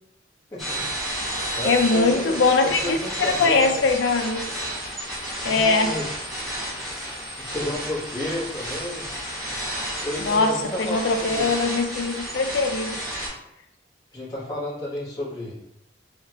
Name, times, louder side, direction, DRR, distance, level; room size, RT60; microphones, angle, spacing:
voice 1, 0.5-0.8 1.5-3.8 5.4-6.2 7.4-9.1 10.0-11.5 14.1-15.6, left 1 dB, 20° left, -9 dB, 1.2 m, -32 dB
sound 1, 0.6-13.3, right 1 dB, ahead, 1.2 m, -31 dB
voice 2, 1.6-4.4 5.4-6.0 10.2-10.5 10.8-13.0, left 3 dB, 75° left, 5 dB, 0.4 m, -21 dB
3.6 x 2.4 x 2.8 m, 0.79 s
head